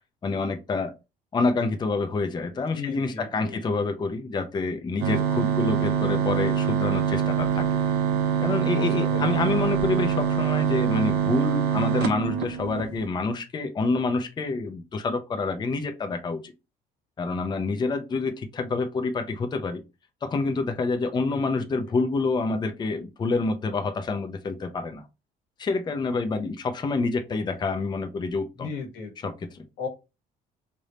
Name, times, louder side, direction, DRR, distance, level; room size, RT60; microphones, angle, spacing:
voice 1, 0.2-0.9 1.3-7.7 8.4-16.5 17.2-19.8 20.2-25.1 25.6-28.7 29.2-29.6, left 3 dB, 25° left, 7 dB, 0.5 m, -27 dB
voice 2, 2.7-3.6 8.7-9.3 21.2-21.7 28.6-29.1 29.8-29.9, left 5 dB, 90° left, 2 dB, 1.4 m, -36 dB
sound 1, 5.0-13.1, right 7 dB, 80° right, 1.0 m, -24 dB
3.3 x 2.6 x 4.1 m, 0.27 s
cardioid pair, 110°, 17 cm